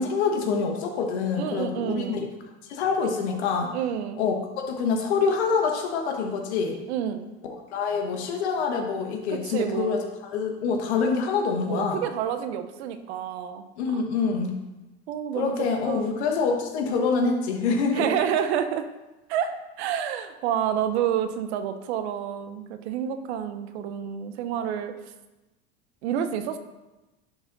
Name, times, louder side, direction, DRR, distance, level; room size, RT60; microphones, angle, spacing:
voice 1, 0.0-2.2 2.7-3.7 4.2-6.8 7.4-12.0 13.8-14.6 15.3-18.2, left 5 dB, 85° left, 3 dB, 1.3 m, -26 dB
voice 2, 1.4-2.2 3.7-4.2 6.9-7.3 9.3-10.0 11.7-13.6 13.9-14.0 15.1-16.2 17.9-18.9 19.3-24.9 26.0-26.6, right 9 dB, 80° right, 9 dB, 0.8 m, -29 dB
10.5 x 4.1 x 4.0 m, 1.1 s
supercardioid pair, 100°, 32 cm